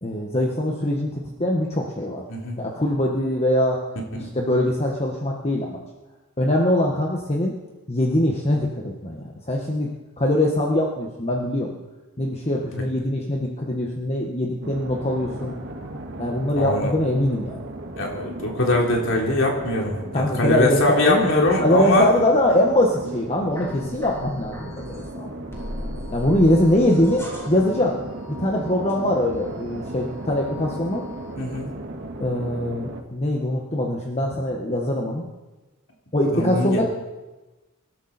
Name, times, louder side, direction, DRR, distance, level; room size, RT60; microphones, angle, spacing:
voice 1, 0.0-2.2 2.6-3.8 4.3-5.8 6.4-7.5 7.9-9.9 10.2-11.7 12.2-15.6 16.2-17.6 20.1-21.3 21.6-25.3 26.1-28.0 28.3-31.0 32.2-35.2 36.1-36.8, left 1 dB, 30° left, -1 dB, 1.6 m, -22 dB
voice 2, 2.3-2.6 4.2-4.3 16.6-16.9 18.0-22.1 31.4-31.7 36.3-36.8, left 2 dB, 60° left, -1 dB, 3.7 m, -22 dB
sound 1, 14.6-33.0, right 1 dB, 55° right, 1.9 m, -36 dB
sound 2, 23.5-25.1 25.5-29.5 29.9-31.3, left 1 dB, 10° left, 2.8 m, -38 dB
25.5 x 12.5 x 4.4 m, 1.1 s
head